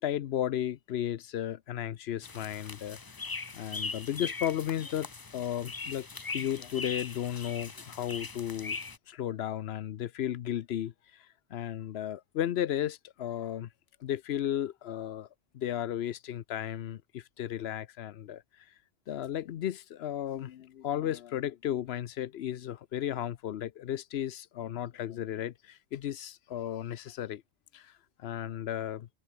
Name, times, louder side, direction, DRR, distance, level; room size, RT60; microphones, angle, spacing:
voice 1, 0.0-3.0 3.5-6.1 6.3-8.8 9.1-13.7 14.0-15.3 15.5-18.4 19.1-27.4 27.7-27.9 28.2-29.1, left 11 dB, 80° left, 0.9 m, -34 dB
sound 1, 2.2-9.0, left 4 dB, 25° left, 0.7 m, -40 dB
omnidirectional pair, 1.1 m